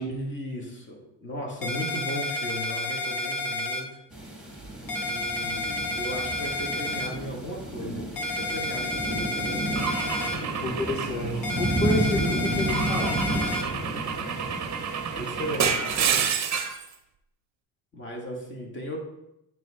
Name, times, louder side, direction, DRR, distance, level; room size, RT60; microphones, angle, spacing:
voice 1, 0.1-3.9 5.1-9.6 15.2-16.4 17.9-19.0, equal, 25° left, -1 dB, 2.0 m, -36 dB
sound 1, 1.6-3.8 4.9-7.1 8.2-10.4 11.4-13.6, left 1 dB, 45° left, 1.2 m, -30 dB
sound 2, 4.1-16.1, right 1 dB, ahead, 1.9 m, -32 dB
Car / Engine / Glass, 9.8-12.0 12.7-16.9, right 7 dB, 35° right, 0.8 m, -29 dB
voice 2, 10.4-13.2, left 1 dB, 75° left, 0 dB, 1.6 m, -30 dB
8.8 x 3.3 x 3.7 m, 0.85 s
supercardioid pair, 75°, 48 cm